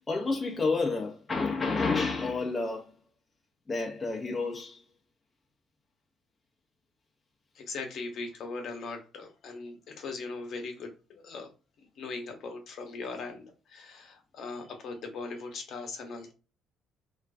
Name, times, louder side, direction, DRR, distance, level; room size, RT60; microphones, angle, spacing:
voice 1, 0.0-2.9 3.7-4.8, left 3 dB, 15° left, 0.4 m, -30 dB
voice 2, 7.5-11.5 11.8-16.3, left 3 dB, 50° left, 0.7 m, -40 dB
2.4 x 2.3 x 2.2 m
cardioid pair, 150°, 0 cm